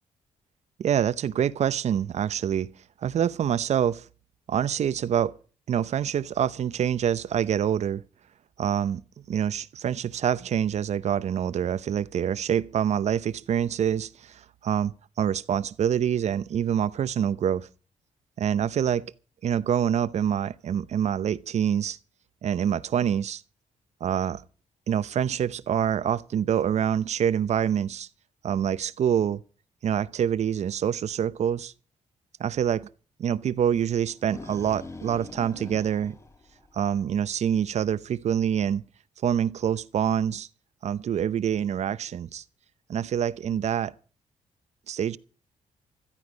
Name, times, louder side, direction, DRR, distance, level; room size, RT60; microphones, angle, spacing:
voice 1, 0.8-2.7 3.0-4.0 4.5-5.3 5.7-8.0 8.6-9.0 9.3-17.7 18.4-19.1 19.4-22.0 22.4-23.4 24.0-24.4 24.9-28.1 28.4-29.4 29.8-31.7 32.4-32.9 33.2-36.2 36.7-38.8 39.2-40.5 40.8-42.4 42.9-43.9 44.9-45.2, right 9 dB, 60° right, 0.7 m, -26 dB
sound 1, 34.1-37.2, left 2 dB, 20° left, 1.3 m, -43 dB
16.0 x 14.0 x 5.2 m
cardioid pair, 105°, 13 cm